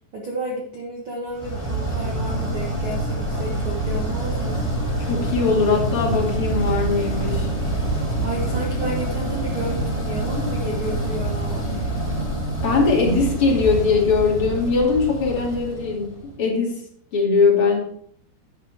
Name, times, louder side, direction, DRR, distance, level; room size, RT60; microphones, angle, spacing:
voice 1, 0.1-4.7 8.2-11.6, right 1 dB, 90° right, -2 dB, 1.1 m, -31 dB
sound 1, 1.4-16.4, right 1 dB, 10° left, 3.0 m, -26 dB
voice 2, 5.1-7.5 12.6-16.8 17.1-17.8, left 4 dB, 35° left, -2 dB, 2.8 m, -20 dB
10.5 x 8.7 x 3.5 m, 0.64 s
omnidirectional pair, 5.0 m